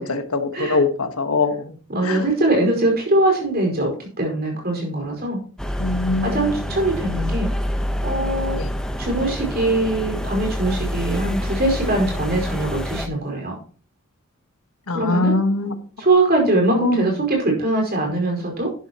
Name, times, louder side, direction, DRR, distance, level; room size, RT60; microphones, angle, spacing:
voice 1, 0.0-1.7 2.0-2.3 5.8-6.8 8.5-8.7 14.9-15.7 16.7-17.1, left 3 dB, 85° left, 7 dB, 1.4 m, -23 dB
voice 2, 1.9-5.4 6.2-7.5 8.0-8.6 9.0-13.6 14.9-15.4 16.0-18.7, right 2 dB, 45° right, 1 dB, 4.9 m, -22 dB
sound 1, 5.6-13.1, equal, 5° left, 1.0 m, -27 dB
12.0 x 10.5 x 3.0 m, 0.42 s
head